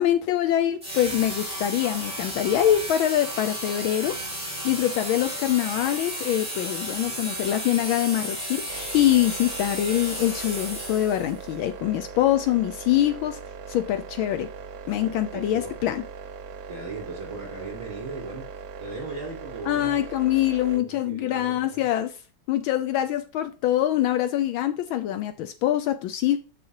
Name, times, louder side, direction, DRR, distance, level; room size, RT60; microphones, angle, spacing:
voice 1, 0.0-4.2 4.6-13.4 13.7-14.5 14.9-16.0 19.7-22.1 22.5-26.4, left 12 dB, 75° left, 1.3 m, -24 dB
sound 1, 0.8-11.4, equal, 5° right, 4.4 m, -33 dB
sound 2, 8.7-20.8, right 6 dB, 70° right, 0.9 m, -40 dB
voice 2, 15.0-15.7 16.7-18.4 18.8-20.0 20.6-21.8, right 3 dB, 20° right, 3.9 m, -38 dB
7.8 x 7.6 x 2.9 m
omnidirectional pair, 2.3 m